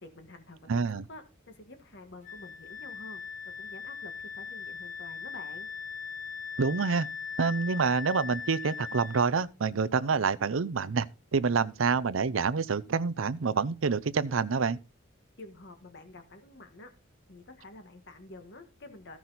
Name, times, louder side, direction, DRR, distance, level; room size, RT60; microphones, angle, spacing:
voice 1, 0.0-3.2 3.6-5.7 15.4-16.9 17.3-19.2, left 2 dB, 55° left, 1.6 m, -49 dB
voice 2, 0.7-1.0 6.6-7.1 7.4-11.1 11.3-14.8, right 5 dB, 70° right, 0.6 m, -27 dB
Wind instrument woodwind instrument, 2.2-9.3, left 6 dB, 40° left, 2.1 m, -40 dB
14.5 x 6.0 x 4.0 m
head